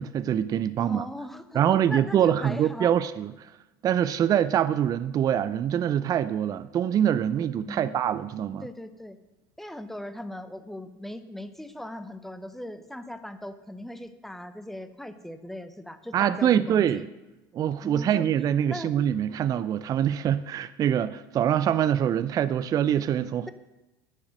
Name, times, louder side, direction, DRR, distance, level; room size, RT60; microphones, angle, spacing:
voice 1, 0.0-1.1 1.5-3.5 3.8-8.7 16.1-17.0 17.5-23.5, right 10 dB, 35° right, 14 dB, 0.4 m, -24 dB
voice 2, 0.8-1.6 1.9-2.9 7.6-8.0 8.6-9.2 9.6-17.0 17.8-18.3 18.7-18.9, left 1 dB, ahead, 11 dB, 0.8 m, -39 dB
9.8 x 6.5 x 6.4 m, 1.0 s
hypercardioid pair, 80°, 11 cm